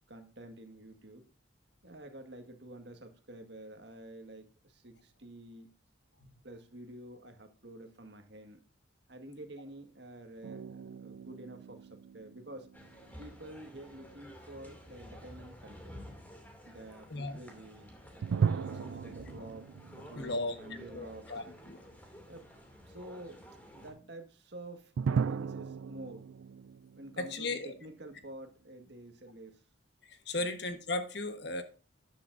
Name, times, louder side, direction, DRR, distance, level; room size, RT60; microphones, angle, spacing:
voice 1, 0.1-1.3 1.8-5.7 6.4-8.6 9.1-12.7 13.2-16.0 16.6-18.0 18.6-21.3 22.3-22.5 22.9-23.4 23.7-26.3 27.0-29.6 30.3-30.5, right 1 dB, 60° right, 1.7 m, -49 dB
sound 1, 10.4-13.7 18.2-21.3 21.6-21.7 25.0-28.3, right 6 dB, 90° right, 0.4 m, -37 dB
sound 2, 12.7-23.9, equal, 10° left, 2.5 m, -51 dB
voice 2, 20.1-20.6 20.9-21.9 27.2-27.8 30.1-31.6, left 2 dB, 55° left, 1.3 m, -36 dB
12.5 x 10.0 x 2.6 m
head